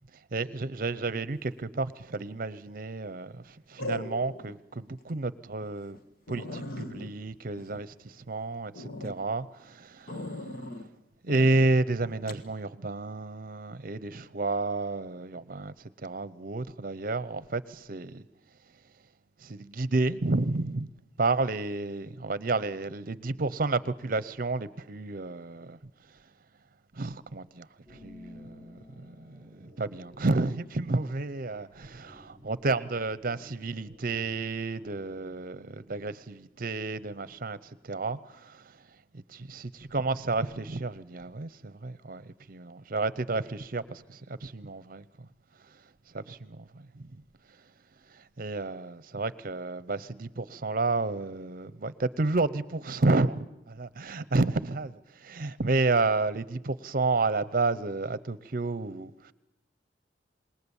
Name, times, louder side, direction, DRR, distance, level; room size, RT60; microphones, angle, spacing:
voice 1, 0.3-6.0 6.3-10.5 11.2-18.2 19.4-20.9 21.2-25.8 26.9-38.8 39.1-45.3 45.7-45.8 46.1-47.2 48.1-59.3, right 3 dB, 55° right, 0.8 m, -31 dB
sound 1, 2.2-2.6 3.8-4.6 5.0-5.1 5.6-5.7 5.9-6.0 6.3-8.3 8.7-9.2 10.1-10.9 11.3-11.7 12.3-12.5, left 1 dB, 55° left, 1.6 m, -39 dB
sound 2, 27.9-35.3, left 1 dB, 25° left, 5.4 m, -54 dB
27.0 x 21.0 x 7.2 m
head